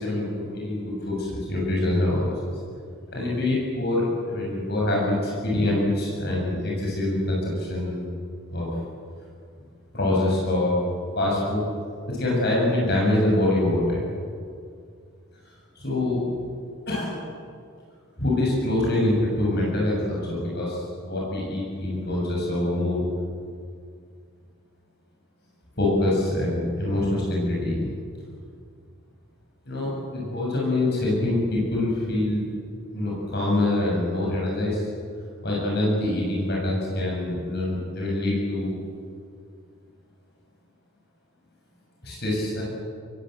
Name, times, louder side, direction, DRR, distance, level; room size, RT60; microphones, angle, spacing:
voice 1, 0.0-2.4 3.1-8.0 8.5-8.7 9.9-10.8 11.2-11.6 12.1-14.0 15.8-16.2 16.9-17.2 18.2-23.0 25.8-27.9 29.7-32.5 32.9-34.8 35.4-38.7 42.0-42.6, left 1 dB, 50° left, -3 dB, 6.9 m, -25 dB
27.0 x 21.5 x 7.9 m, 2.2 s
head